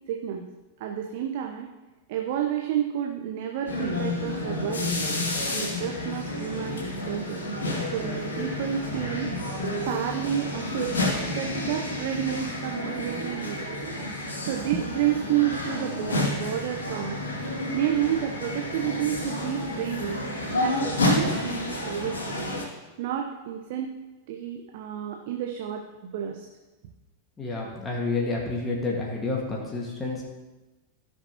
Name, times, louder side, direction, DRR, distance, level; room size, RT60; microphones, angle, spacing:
voice 1, 0.1-0.4 0.8-1.7 2.1-5.0 5.6-7.4 7.9-9.3 9.8-11.0 11.3-13.8 14.4-17.2 17.7-20.2 20.6-22.5 23.0-24.0 24.3-25.8 26.1-26.5, right 10 dB, 50° right, 3 dB, 0.8 m, -30 dB
sound 1, 3.7-22.6, left 1 dB, 70° left, 2.4 m, -30 dB
voice 2, 27.4-30.2, left 3 dB, 15° left, -2 dB, 1.8 m, -29 dB
16.0 x 6.7 x 3.0 m, 1.1 s
figure-of-eight pair, 90°, 0 cm